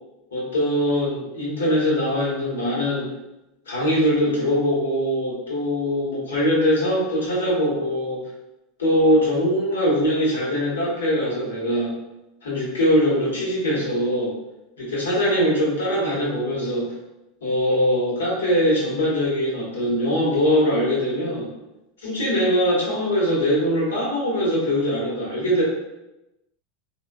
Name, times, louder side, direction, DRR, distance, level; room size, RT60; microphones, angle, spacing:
voice 1, 0.3-3.1 3.7-8.2 8.8-11.9 12.4-14.3 14.8-16.9 17.4-21.5 22.0-25.6, equal, 85° left, -6 dB, 1.0 m, -22 dB
3.1 x 2.2 x 2.3 m, 0.94 s
hypercardioid pair, 85°, 0 cm